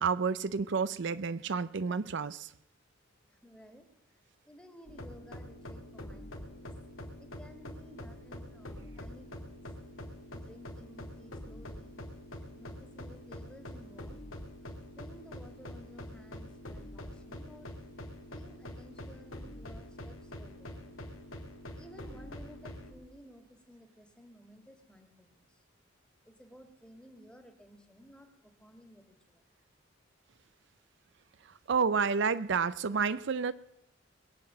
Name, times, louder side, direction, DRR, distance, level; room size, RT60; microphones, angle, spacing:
voice 1, 0.0-2.5 31.7-33.5, right 5 dB, 60° right, 15 dB, 0.5 m, -30 dB
voice 2, 3.3-3.9 4.5-6.7 7.2-9.6 10.3-12.0 12.5-14.3 15.0-17.7 18.3-21.0 21.7-25.4 26.2-29.4, equal, 5° left, 6 dB, 1.9 m, -55 dB
sound 1, 4.9-22.9, left 1 dB, 80° left, 2.5 m, -45 dB
21.5 x 7.9 x 7.5 m, 0.82 s
head